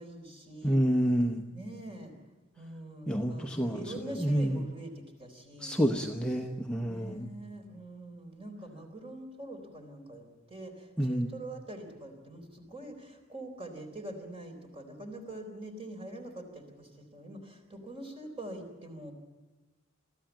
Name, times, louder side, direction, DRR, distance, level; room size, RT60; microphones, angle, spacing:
voice 1, 0.0-0.9 1.5-2.1 2.6-5.8 6.8-19.1, right 1 dB, 30° right, 4 dB, 4.0 m, -44 dB
voice 2, 0.6-1.4 3.1-3.9 4.2-4.6 5.6-7.3 11.0-11.3, equal, 5° left, 2 dB, 0.9 m, -28 dB
22.0 x 14.5 x 9.1 m, 1.2 s
head